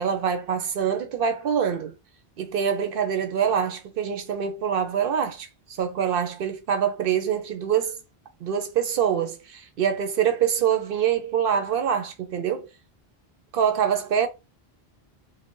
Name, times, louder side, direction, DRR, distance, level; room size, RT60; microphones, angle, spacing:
voice 1, 0.0-1.9 2.4-8.0 8.4-12.7 13.5-14.3, right 8 dB, 65° right, 0.7 m, -25 dB
2.5 x 2.1 x 3.6 m
omnidirectional pair, 1.0 m